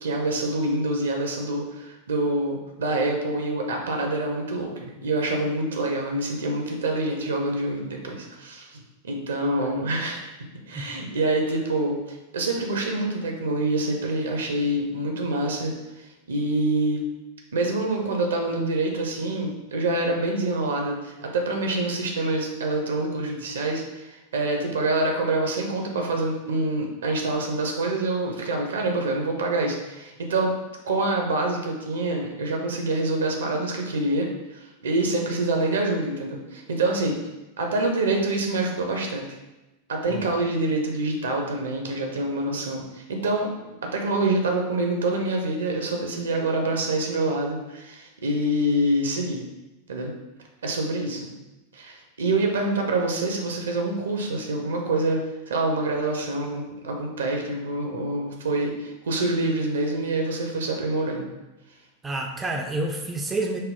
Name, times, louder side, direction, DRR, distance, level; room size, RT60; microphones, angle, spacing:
voice 1, 0.0-10.3 10.7-17.0 17.5-30.5 30.8-37.2 37.6-39.3 39.9-43.5 43.8-49.4 49.9-50.1 50.6-51.3 51.7-61.3, right 2 dB, 65° right, 2 dB, 0.6 m, -26 dB
voice 2, 62.0-63.6, right 2 dB, 15° right, 2 dB, 0.4 m, -29 dB
4.3 x 2.0 x 3.6 m, 1.0 s
figure-of-eight pair, 90°, 0 cm